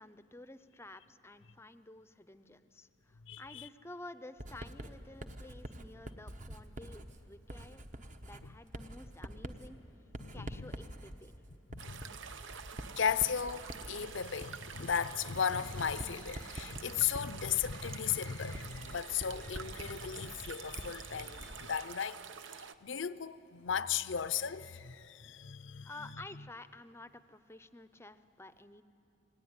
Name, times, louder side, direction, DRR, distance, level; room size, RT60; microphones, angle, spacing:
voice 1, 0.0-7.8 8.2-9.8 10.3-11.3 25.8-28.8, left 2 dB, 15° left, 0.6 m, -51 dB
voice 2, 3.3-3.7 8.4-8.5 10.2-10.7 11.7-12.1 13.0-22.2 22.5-26.1, left 7 dB, 70° left, 0.6 m, -36 dB
Writing, 4.4-21.7, equal, 40° right, 1.1 m, -47 dB
sound 1, 11.8-22.7, right 6 dB, 70° right, 0.8 m, -48 dB
28.0 x 19.0 x 9.7 m
head